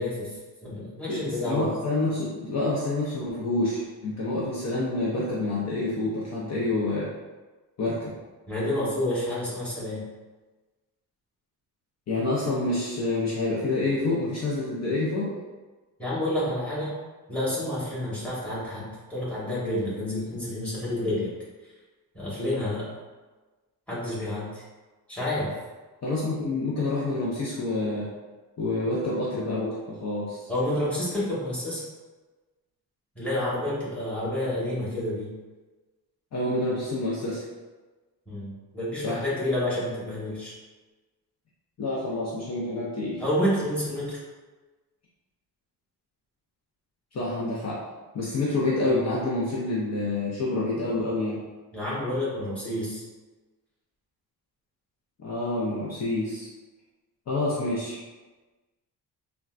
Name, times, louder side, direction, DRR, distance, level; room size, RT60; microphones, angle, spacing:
voice 1, 0.0-1.7 8.5-10.0 16.0-17.0 17.3-21.3 22.1-22.8 23.9-24.6 25.1-25.6 30.5-31.8 33.1-35.3 38.3-40.5 43.2-44.2 51.7-53.0, left 1 dB, 5° left, -9 dB, 1.3 m, -29 dB
voice 2, 1.1-7.1 7.8-8.1 12.1-15.3 26.0-28.1 28.6-30.4 36.3-37.4 39.0-39.2 41.8-43.2 47.1-47.8 48.1-51.4 55.2-56.5 57.3-58.0, left 2 dB, 45° left, -6 dB, 0.6 m, -28 dB
3.6 x 2.2 x 2.4 m, 1.3 s
cardioid pair, 115°, 39 cm